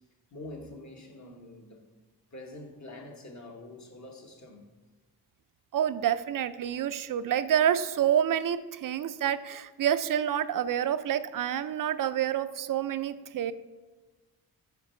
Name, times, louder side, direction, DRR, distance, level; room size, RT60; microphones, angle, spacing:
voice 1, 0.3-1.8 2.3-4.7, left 2 dB, 45° left, 1.2 m, -45 dB
voice 2, 5.7-13.5, right 10 dB, 55° right, 0.4 m, -28 dB
8.4 x 4.5 x 4.3 m
cardioid pair, 80°, 39 cm